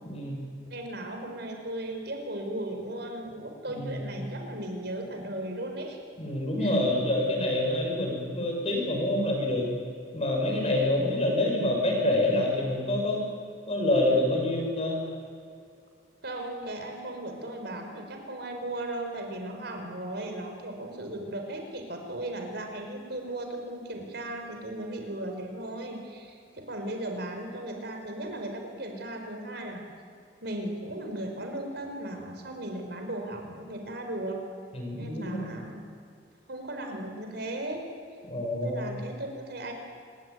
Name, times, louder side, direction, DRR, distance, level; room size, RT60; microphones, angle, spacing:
voice 1, 0.0-0.5 3.7-4.1 6.2-9.7 10.1-13.2 13.7-15.0 34.7-35.6 38.3-38.9, left 1 dB, 35° left, 0 dB, 7.2 m, -27 dB
voice 2, 0.7-6.0 6.6-6.8 16.2-29.9 30.4-34.4 35.0-35.8 36.5-37.8 38.5-39.7, right 1 dB, 60° right, 4 dB, 5.0 m, -36 dB
26.5 x 21.5 x 9.5 m, 2.3 s
head